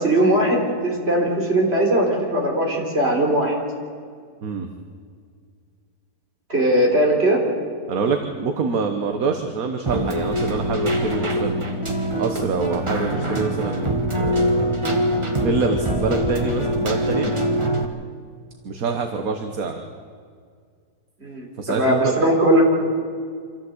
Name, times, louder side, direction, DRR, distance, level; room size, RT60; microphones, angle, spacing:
voice 1, 0.0-3.5 6.5-7.4 21.2-22.6, right 1 dB, 35° right, 0 dB, 4.1 m, -19 dB
voice 2, 7.9-11.7 12.2-14.8 15.3-17.3 18.7-19.8 21.6-22.1, right 4 dB, 60° right, 5 dB, 1.6 m, -25 dB
Keyboard (musical), 9.9-17.9, equal, 20° right, 1.4 m, -23 dB
26.0 x 14.5 x 8.0 m, 2.1 s
omnidirectional pair, 1.8 m